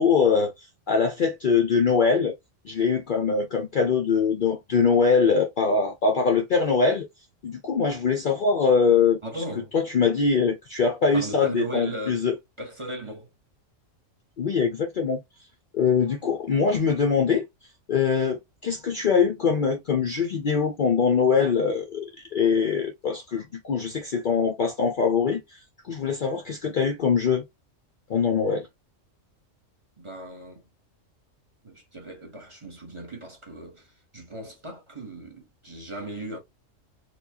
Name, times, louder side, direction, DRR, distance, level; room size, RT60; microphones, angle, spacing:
voice 1, 0.0-2.3 2.6-7.1 7.4-9.2 9.7-12.3 14.4-15.2 15.7-17.5 17.9-25.6 25.9-27.4 28.1-28.7, left 5 dB, 55° left, 0.6 m, -23 dB
voice 2, 9.2-9.7 11.1-12.2 12.6-13.3 30.0-30.7 31.6-36.4, right 1 dB, 25° right, 0.9 m, -37 dB
4.2 x 2.2 x 2.8 m
omnidirectional pair, 1.4 m